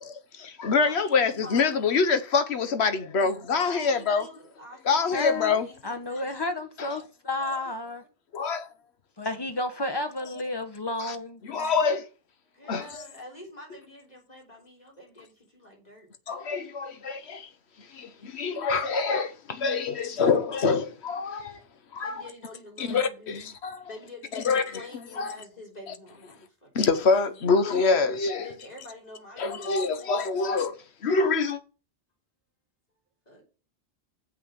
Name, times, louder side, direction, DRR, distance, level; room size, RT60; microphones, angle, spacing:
voice 1, 0.0-4.3 4.9-5.7 8.3-8.7 11.0-11.2 11.4-12.1 12.7-13.1 16.3-17.5 17.9-21.6 21.9-22.2 22.8-23.9 24.3-24.6 25.2-25.3 26.7-28.5 29.4-30.7 31.0-31.6, left 4 dB, 75° left, 1.2 m, -25 dB
voice 2, 0.8-1.8 3.6-6.3 12.5-16.1 18.4-18.6 22.0-23.6 23.8-27.4 28.3-30.7 33.3-33.4, left 1 dB, 40° left, 3.7 m, -47 dB
voice 3, 5.1-5.5 5.8-8.0 9.2-11.4, left 2 dB, 25° left, 1.1 m, -31 dB
7.4 x 6.1 x 6.6 m
omnidirectional pair, 1.1 m